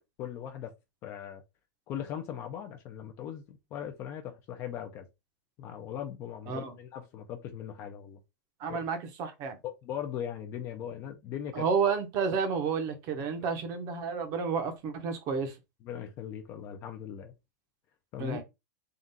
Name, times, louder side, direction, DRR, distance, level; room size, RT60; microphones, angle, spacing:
voice 1, 0.2-0.7 1.0-1.4 1.9-5.1 5.6-8.2 8.7-8.8 9.6-11.7 15.8-17.3 18.1-18.4, left 9 dB, 25° left, 0.4 m, -39 dB
voice 2, 8.6-9.6 11.5-15.5 18.2-18.4, right 5 dB, 30° right, 0.8 m, -31 dB
3.7 x 2.4 x 4.0 m
supercardioid pair, 175°, 11 cm